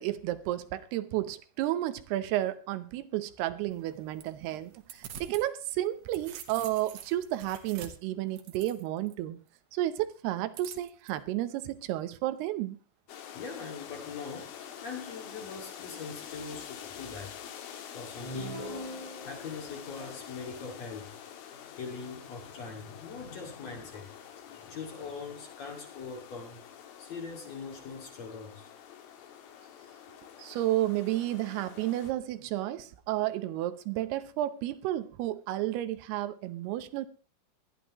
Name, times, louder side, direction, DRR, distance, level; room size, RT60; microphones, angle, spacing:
voice 1, 0.0-9.4 9.7-12.8 30.4-37.1, right 14 dB, 90° right, 12 dB, 2.9 m, -32 dB
sound 1, 3.7-5.5 5.8-9.1 10.5-11.1, right 9 dB, 70° right, 2.8 m, -46 dB
sound 2, 13.1-32.1, left 9 dB, 70° left, 3.0 m, -47 dB
voice 2, 13.3-17.4 17.9-24.1 24.6-26.6 27.0-28.7, left 5 dB, 45° left, 1 dB, 3.1 m, -42 dB
sound 3, 18.2-19.8, right 1 dB, 20° left, 0.9 m, -41 dB
20.0 x 12.0 x 3.0 m, 0.34 s
omnidirectional pair, 4.5 m